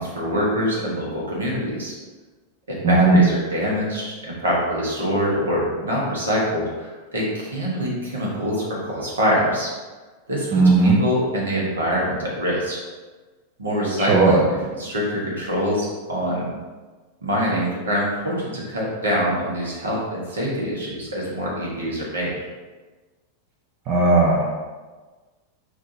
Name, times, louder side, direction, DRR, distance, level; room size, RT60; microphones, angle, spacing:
voice 1, 0.0-1.9 2.7-9.7 10.3-12.8 13.6-16.5 17.2-22.4, equal, 70° right, -4 dB, 1.3 m, -24 dB
voice 2, 2.8-3.2 10.5-10.9 14.1-14.4 23.9-24.6, right 3 dB, 40° right, -2 dB, 0.6 m, -16 dB
6.0 x 2.7 x 2.8 m, 1.3 s
figure-of-eight pair, 90°, 0 cm